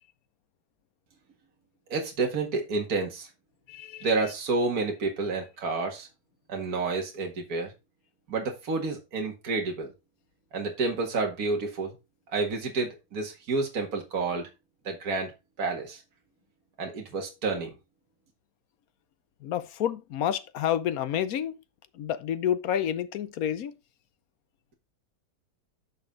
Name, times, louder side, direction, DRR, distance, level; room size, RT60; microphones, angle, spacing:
voice 1, 1.9-3.3 4.0-6.1 6.5-7.7 8.3-9.9 10.5-11.9 12.3-14.5 14.9-15.3 15.6-16.0 16.8-17.7, right 3 dB, 55° right, 2.3 m, -29 dB
voice 2, 3.7-4.1 19.4-21.6 22.0-23.7, left 10 dB, 65° left, 1.1 m, -29 dB
10.0 x 5.8 x 3.8 m
omnidirectional pair, 1.9 m